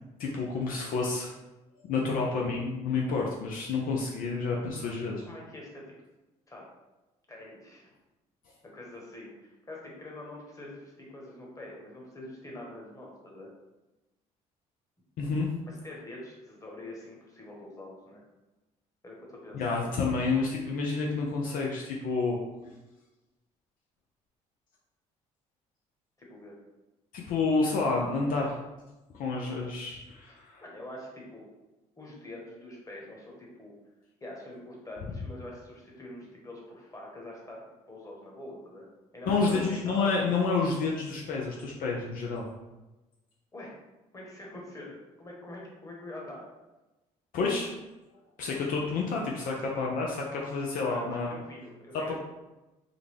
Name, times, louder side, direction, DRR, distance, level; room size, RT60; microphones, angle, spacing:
voice 1, 0.2-1.3 1.9-5.2 15.2-15.5 19.5-22.4 27.1-28.6 29.1-30.6 39.3-42.5 47.3-47.7 48.4-51.4 51.9-52.1, left 4 dB, 65° left, -2 dB, 0.6 m, -29 dB
voice 2, 4.7-5.8 6.5-6.7 7.3-7.9 8.7-13.5 15.7-18.2 19.0-19.8 26.2-26.6 30.6-31.5 32.0-33.8 34.2-37.6 37.9-38.9 39.1-40.1 43.5-43.7 44.1-46.4 50.9-52.1, left 1 dB, 20° left, -2 dB, 1.3 m, -45 dB
3.7 x 2.2 x 3.4 m, 1.0 s
supercardioid pair, 70°, 15 cm